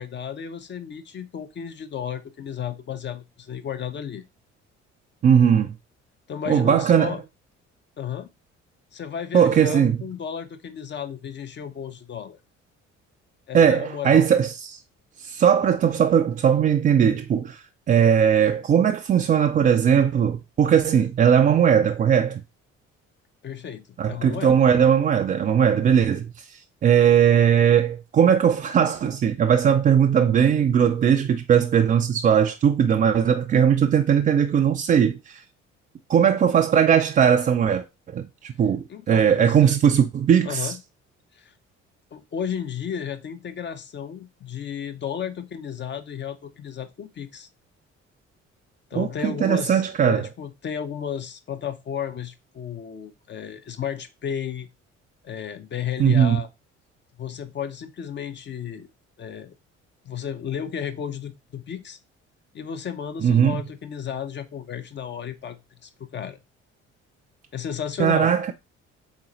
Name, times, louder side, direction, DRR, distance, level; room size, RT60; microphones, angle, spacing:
voice 1, 0.0-4.2 6.3-7.2 8.0-8.3 8.9-12.4 13.5-14.3 23.4-24.7 38.9-39.8 40.4-40.8 41.3-41.5 42.1-47.5 48.9-54.7 55.2-56.5 57.2-58.9 59.2-59.5 60.0-62.0 62.5-66.4 67.5-68.3, left 8 dB, 30° left, 0.6 m, -33 dB
voice 2, 5.2-5.7 6.5-7.2 9.3-10.0 13.5-14.8 15.2-22.4 24.0-35.4 36.1-37.8 38.1-40.7 49.0-50.3 56.0-56.4 63.2-63.6 68.0-68.5, right 8 dB, 25° right, 0.3 m, -19 dB
4.0 x 3.8 x 2.9 m
figure-of-eight pair, 45°, 36 cm